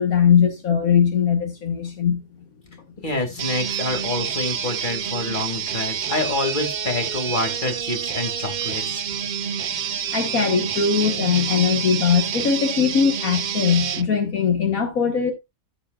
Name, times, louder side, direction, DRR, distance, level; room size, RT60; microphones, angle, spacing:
voice 1, 0.0-2.2 10.1-15.3, left 7 dB, 75° left, 1.8 m, -20 dB
voice 2, 3.0-9.0, left 2 dB, 35° left, 2.6 m, -27 dB
sound 1, 3.4-14.1, right 8 dB, 85° right, 0.4 m, -28 dB
13.5 x 6.8 x 2.4 m
omnidirectional pair, 1.5 m